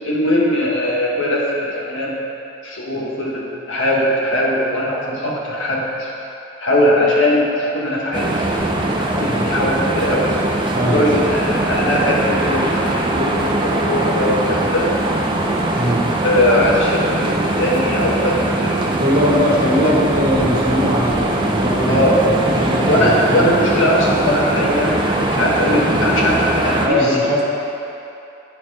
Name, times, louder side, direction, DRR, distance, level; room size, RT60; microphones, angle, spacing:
voice 1, 0.0-2.2 2.6-6.1 6.6-8.5 8.9-10.4 10.8-14.9 16.2-19.0 19.4-19.5 19.8-19.9 21.9-22.2 22.9-27.0, left 1 dB, 80° left, -4 dB, 1.5 m, -20 dB
sound 1, 8.1-26.9, right 1 dB, 25° right, 0.5 m, -20 dB
voice 2, 10.7-11.1 15.7-16.1 19.0-23.7 25.6-26.0 26.8-27.4, equal, 45° right, -5 dB, 1.4 m, -20 dB
9.8 x 4.4 x 4.9 m, 2.8 s
head